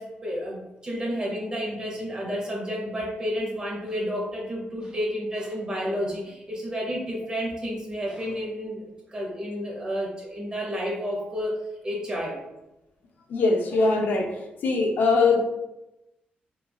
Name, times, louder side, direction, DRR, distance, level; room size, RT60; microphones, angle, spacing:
voice 1, 0.0-8.8 9.1-11.6 11.8-12.4, equal, 25° right, -3 dB, 0.8 m, -31 dB
voice 2, 13.3-14.3 14.6-15.5, left 3 dB, 70° left, 2 dB, 0.4 m, -21 dB
3.0 x 2.3 x 2.2 m, 0.94 s
wide cardioid pair, 135°, 3 cm